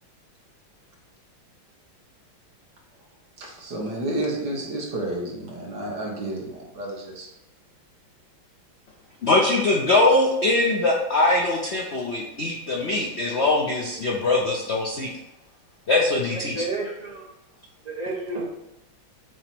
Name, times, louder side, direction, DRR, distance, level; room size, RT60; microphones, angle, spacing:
voice 1, 3.4-7.3 9.5-9.6, right 1 dB, 55° right, -1 dB, 1.9 m, -30 dB
voice 2, 9.2-15.1 15.9-16.6, left 2 dB, 85° left, -1 dB, 0.5 m, -22 dB
voice 3, 16.3-17.2 17.8-18.5, right 2 dB, 20° right, -3 dB, 1.3 m, -31 dB
7.8 x 3.0 x 5.9 m, 0.92 s
omnidirectional pair, 2.2 m